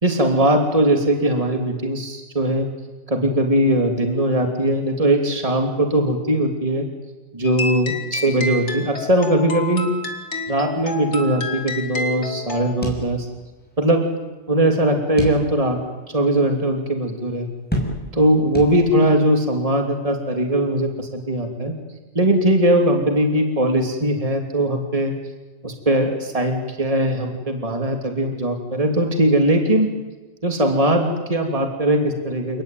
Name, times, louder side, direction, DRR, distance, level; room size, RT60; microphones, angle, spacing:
voice 1, 0.0-2.7 3.1-6.9 7.3-9.9 10.5-13.3 13.8-14.0 14.5-15.8 16.1-17.5 18.1-21.7 22.1-25.1 25.6-29.9 30.4-32.6, right 1 dB, 30° right, 4 dB, 3.1 m, -20 dB
sound 1, 7.4-12.7, left 3 dB, 65° left, 2.9 m, -30 dB
sound 2, 12.8-13.7 14.0-14.1 15.2-15.8 16.3-16.4 17.7-18.3 18.5-19.2, equal, 5° left, 6.2 m, -28 dB
30.0 x 19.0 x 9.4 m, 1.2 s
omnidirectional pair, 1.3 m